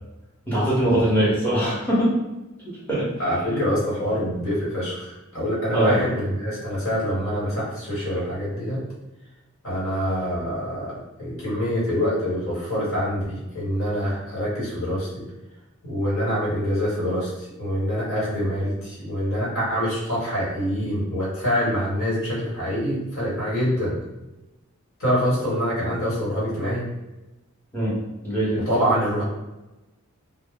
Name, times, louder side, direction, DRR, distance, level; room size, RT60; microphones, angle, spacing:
voice 1, 0.5-2.1 2.9-3.0 3.4-3.6 5.7-6.0 27.7-28.0 28.2-28.6, right 1 dB, 10° left, -8 dB, 0.7 m, -21 dB
voice 2, 3.2-8.8 9.6-10.9 11.2-15.2 15.8-24.0 25.0-26.8 28.5-29.2, equal, 65° left, -7 dB, 1.3 m, -25 dB
2.0 x 2.0 x 3.4 m, 1.0 s
head